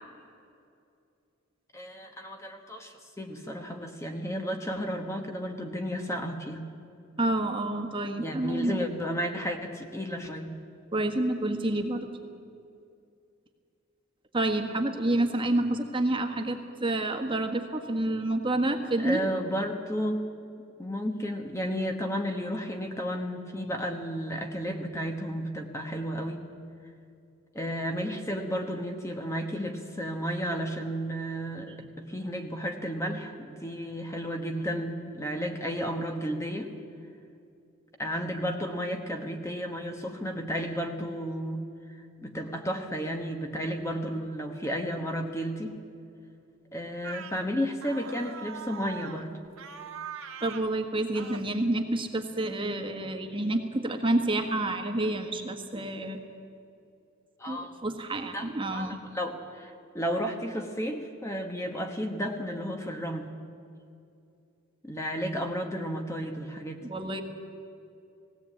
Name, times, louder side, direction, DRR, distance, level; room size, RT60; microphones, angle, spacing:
voice 1, 1.7-6.6 8.2-10.5 19.0-20.3 20.8-26.5 27.5-36.7 38.0-45.8 46.7-49.4 57.4-57.8 58.1-63.3 64.8-66.9, equal, 15° left, 4 dB, 1.2 m, -33 dB
voice 2, 7.2-8.8 10.9-12.1 14.3-19.3 50.4-56.2 57.5-58.9 66.8-67.2, right 1 dB, 25° right, 4 dB, 1.5 m, -28 dB
sound 1, 47.0-47.4 47.8-49.3 49.6-50.7 51.1-51.4, right 7 dB, 75° right, 1.3 m, -41 dB
19.0 x 17.0 x 8.6 m, 2.5 s
head